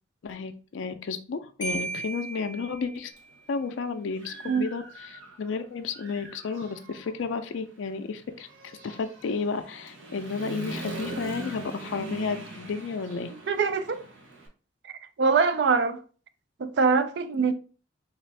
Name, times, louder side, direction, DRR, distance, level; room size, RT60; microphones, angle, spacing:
voice 1, 0.2-3.1 3.5-13.3, left 5 dB, 75° left, 0.4 m, -32 dB
Marimba xylophone, 1.6-3.3, right 3 dB, 20° left, 0.6 m, -36 dB
Human voice / Motorcycle, 3.2-3.3 3.8-5.5 5.9-14.5, right 2 dB, 85° right, 0.8 m, -42 dB
voice 2, 13.5-14.0 15.2-16.0 16.6-17.5, right 5 dB, 60° right, 0.4 m, -23 dB
3.5 x 2.4 x 3.2 m
head